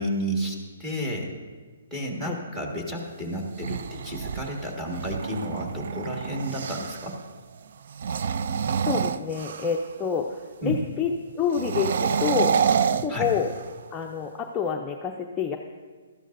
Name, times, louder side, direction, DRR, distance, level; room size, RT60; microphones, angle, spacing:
voice 1, 0.0-1.3 1.9-7.2 10.6-10.8 13.1-13.3, equal, 10° right, -1 dB, 1.8 m, -31 dB
sound 1, 3.4-7.1 7.9-9.9 11.5-13.8, right 7 dB, 60° right, 0.4 m, -28 dB
voice 2, 8.8-12.6 13.0-13.5 13.9-15.6, left 6 dB, 15° left, 0 dB, 0.6 m, -28 dB
16.0 x 12.5 x 2.6 m, 1.5 s
hypercardioid pair, 150°, 0 cm